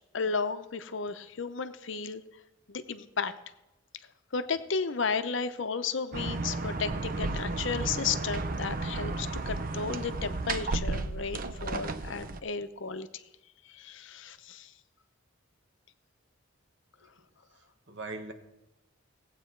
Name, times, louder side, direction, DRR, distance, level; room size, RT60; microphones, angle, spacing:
voice 1, 0.1-2.2 2.7-3.3 4.3-13.2 13.7-14.7, left 5 dB, 65° left, 10 dB, 0.7 m, -33 dB
sound 1, 6.1-12.4, right 3 dB, 45° right, 0.6 m, -33 dB
voice 2, 17.5-18.3, right 3 dB, 60° right, 5 dB, 1.4 m, -41 dB
18.0 x 8.3 x 4.5 m, 0.93 s
head